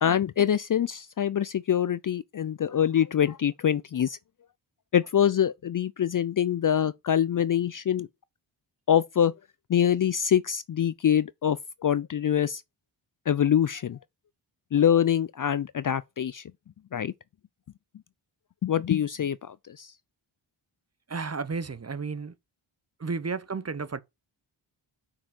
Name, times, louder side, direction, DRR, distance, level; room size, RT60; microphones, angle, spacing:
voice 1, 0.0-4.2 4.9-8.1 8.9-9.3 9.7-12.6 13.3-14.0 14.7-16.4 16.9-17.1 18.6-19.9, left 9 dB, 45° left, 0.4 m, -25 dB
voice 2, 21.1-22.3 23.0-24.0, right 4 dB, 30° right, 0.8 m, -32 dB
5.7 x 4.8 x 6.4 m
cardioid pair, 50°, 50 cm